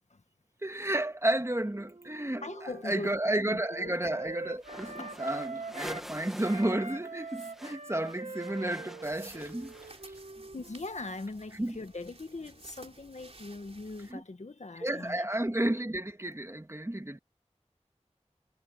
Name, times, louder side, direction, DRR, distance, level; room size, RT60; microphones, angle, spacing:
voice 1, 0.6-9.7 11.6-11.8 14.1-14.2 14.8-17.2, right 1 dB, 25° right, 2.2 m, -32 dB
Wind instrument woodwind instrument, 1.7-6.1 6.4-10.9, right 3 dB, 85° right, 1.9 m, -43 dB
voice 2, 2.4-3.2 3.5-4.0 5.0-5.2 10.5-15.3, left 2 dB, 75° left, 1.9 m, -41 dB
sound 1, 4.6-6.8 7.0-10.2, equal, 5° right, 2.1 m, -47 dB
sound 2, 9.0-14.1, right 2 dB, 60° right, 3.5 m, -54 dB
wide cardioid pair, 50°, 12 cm